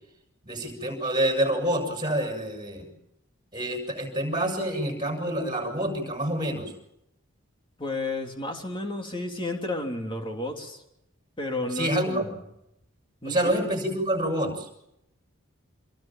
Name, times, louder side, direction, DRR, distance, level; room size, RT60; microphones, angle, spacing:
voice 1, 0.4-2.9 3.5-6.7 11.7-12.2 13.2-14.7, right 1 dB, 20° right, 3 dB, 6.8 m, -27 dB
voice 2, 7.8-10.8 11.4-12.4 13.2-13.6, left 2 dB, 25° left, 2 dB, 3.4 m, -32 dB
26.5 x 21.5 x 7.6 m, 0.82 s
head